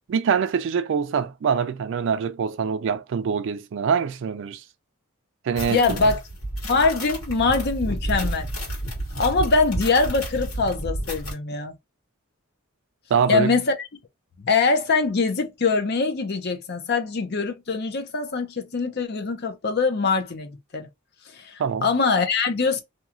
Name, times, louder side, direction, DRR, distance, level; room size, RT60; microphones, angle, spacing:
voice 1, 0.1-4.6 5.4-6.1 13.1-13.5 21.6-21.9, right 6 dB, 60° right, 0.3 m, -24 dB
sound 1, 5.6-11.3, right 1 dB, 75° left, 1.7 m, -30 dB
voice 2, 5.7-6.2 6.6-8.5 9.1-11.7 13.3-13.7 14.4-20.9 21.3-22.8, left 4 dB, 50° left, 0.6 m, -23 dB
2.9 x 2.3 x 2.4 m
head